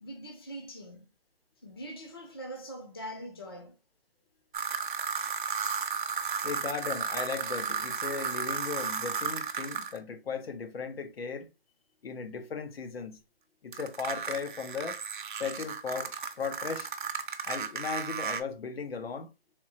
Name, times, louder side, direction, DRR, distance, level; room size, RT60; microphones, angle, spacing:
voice 1, 0.0-1.1 1.6-3.8, right 1 dB, 25° left, 0.4 m, -42 dB
sound 1, 4.5-10.0 13.7-18.4, right 6 dB, 55° right, 0.6 m, -34 dB
voice 2, 6.4-11.5 12.0-13.2 13.6-15.0 15.3-16.9 17.4-19.3, left 5 dB, 75° left, 0.9 m, -37 dB
3.5 x 2.9 x 2.9 m
hypercardioid pair, 175°, 30 cm